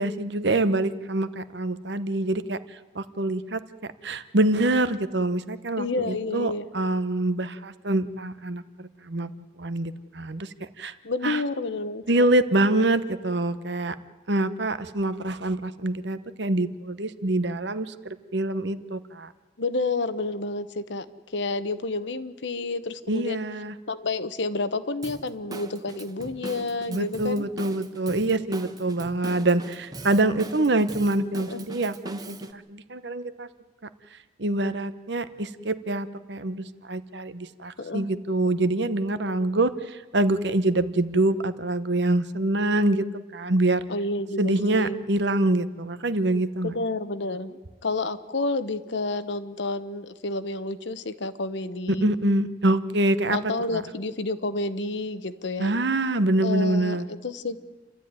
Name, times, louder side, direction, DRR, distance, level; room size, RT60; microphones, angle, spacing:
voice 1, 0.0-2.6 2.9-3.6 4.0-9.3 9.6-10.5 10.8-10.9 11.2-11.4 12.1-13.9 14.3-19.3 23.1-23.7 26.9-33.5 34.4-43.1 43.3-43.8 44.4-46.7 51.9-53.8 55.6-57.1, right 2 dB, 65° right, 13 dB, 1.0 m, -25 dB
voice 2, 5.8-6.7 11.0-12.3 19.6-21.1 21.3-23.4 23.9-27.4 31.5-31.6 37.8-38.1 43.9-45.0 46.6-52.1 53.3-55.8 56.4-57.6, left 3 dB, 70° left, 12 dB, 1.0 m, -30 dB
Drum kit / Drum, 25.0-32.5, right 2 dB, 20° right, 1.0 m, -40 dB
29.0 x 13.0 x 9.6 m, 1.3 s
head